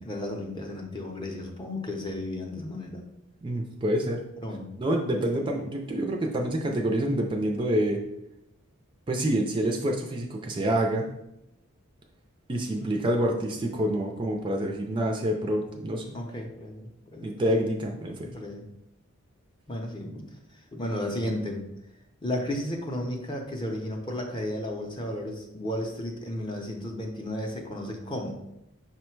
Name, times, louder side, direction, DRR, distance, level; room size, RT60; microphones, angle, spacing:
voice 1, 0.0-3.0 4.4-4.7 5.2-5.5 12.8-13.0 16.1-17.3 18.2-18.6 19.7-20.3 20.7-21.6 22.2-28.4, left 1 dB, 20° left, 1 dB, 0.6 m, -34 dB
voice 2, 3.4-4.2 4.8-8.0 9.1-11.1 12.5-16.2 17.2-18.3, right 1 dB, 20° right, 1 dB, 0.4 m, -27 dB
5.5 x 2.1 x 4.4 m, 0.86 s
head